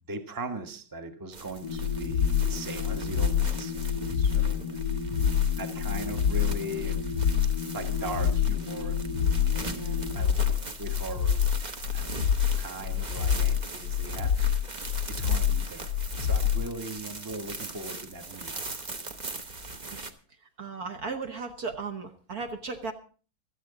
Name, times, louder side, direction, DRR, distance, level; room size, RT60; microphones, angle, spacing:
voice 1, 0.1-3.7 4.1-4.6 5.5-7.1 7.7-9.0 10.1-10.4 10.8-11.4 11.9-14.6 15.1-18.5, right 2 dB, 15° right, 6 dB, 1.0 m, -39 dB
sound 1, 1.3-20.1, right 3 dB, 35° right, 0.8 m, -41 dB
sound 2, 1.6-10.2, left 3 dB, 25° left, 1.5 m, -36 dB
sound 3, 1.7-16.7, left 8 dB, 65° left, 1.2 m, -27 dB
voice 2, 9.6-10.0 19.9-20.0 20.6-22.9, right 4 dB, 55° right, 6 dB, 1.4 m, -36 dB
16.0 x 13.0 x 3.9 m, 0.39 s
omnidirectional pair, 2.2 m